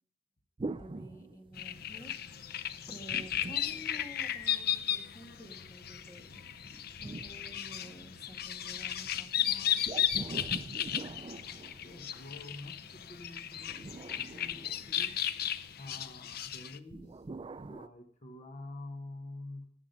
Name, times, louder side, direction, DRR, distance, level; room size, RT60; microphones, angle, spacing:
sound 1, 0.6-2.0 3.0-4.6 6.3-8.3 9.8-12.4 13.5-15.4 16.9-17.9, right 3 dB, 25° right, 0.4 m, -44 dB
voice 1, 0.8-2.1 2.9-6.4 7.0-9.8, equal, 20° left, 4 dB, 2.0 m, -51 dB
sound 2, 1.6-16.8, left 10 dB, 55° left, 0.7 m, -35 dB
voice 2, 11.8-15.2 15.8-19.7, left 2 dB, 40° left, 4 dB, 1.1 m, -48 dB
19.0 x 7.4 x 5.2 m, 0.66 s
head